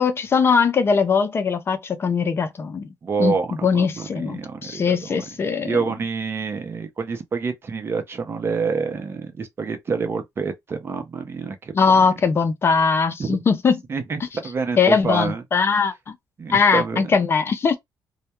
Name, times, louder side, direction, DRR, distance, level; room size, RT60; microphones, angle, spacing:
voice 1, 0.0-2.9 3.2-3.4 3.6-5.8 11.7-13.8 14.8-15.9 16.5-17.8, left 5 dB, 35° left, 0.4 m, -20 dB
voice 2, 3.0-5.1 5.6-11.7 13.2-13.4 13.9-15.4 16.4-17.1, right 5 dB, 35° right, 0.6 m, -27 dB
2.2 x 2.1 x 2.9 m
cardioid pair, 120°, 7 cm